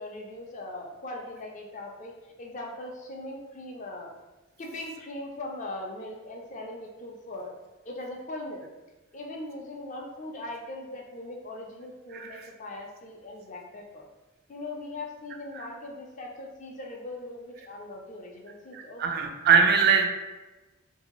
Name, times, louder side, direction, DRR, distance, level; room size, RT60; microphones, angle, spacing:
voice 1, 0.0-4.1 4.6-8.7 9.1-14.0 14.5-19.0, left 2 dB, 35° left, 0 dB, 0.4 m, -40 dB
voice 2, 12.1-12.5 15.5-15.7 18.7-20.1, right 6 dB, 50° right, 5 dB, 0.3 m, -22 dB
2.8 x 2.6 x 3.0 m, 1.1 s
head